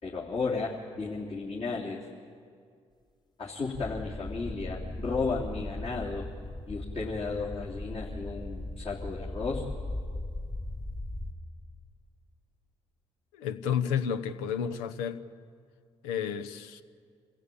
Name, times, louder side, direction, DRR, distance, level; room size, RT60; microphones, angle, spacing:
voice 1, 0.0-2.1 3.4-6.3 6.7-9.6, left 4 dB, 45° left, -4 dB, 3.3 m, -34 dB
sound 1, 3.7-11.3, left 1 dB, 30° left, 2.3 m, -38 dB
voice 2, 13.3-15.2 16.0-16.8, left 8 dB, 85° left, 10 dB, 0.9 m, -31 dB
26.0 x 15.5 x 8.6 m, 2.2 s
hypercardioid pair, 50°, 14 cm